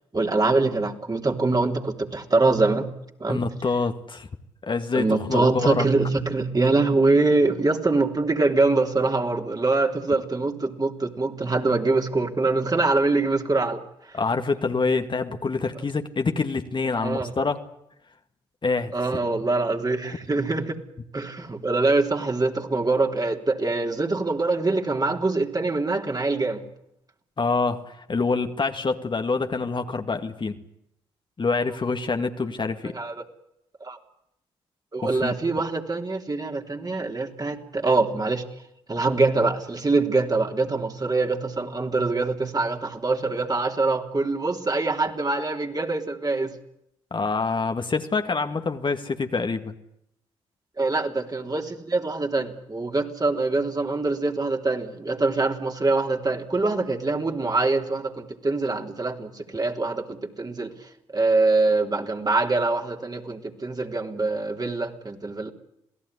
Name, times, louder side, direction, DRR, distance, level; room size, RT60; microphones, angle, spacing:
voice 1, 0.1-2.9 3.2-3.4 4.9-13.8 16.9-17.3 18.9-20.8 21.1-26.6 32.9-33.2 33.8-34.0 34.9-38.4 38.9-46.5 50.8-60.7 61.1-65.5, right 3 dB, 30° right, 4 dB, 3.3 m, -24 dB
voice 2, 3.3-4.3 4.6-5.9 14.1-17.6 18.6-18.9 27.4-30.6 31.4-32.9 35.0-35.3 47.1-49.7, left 4 dB, 35° left, 6 dB, 2.0 m, -26 dB
27.5 x 17.0 x 9.8 m, 0.80 s
hypercardioid pair, 45°, 13 cm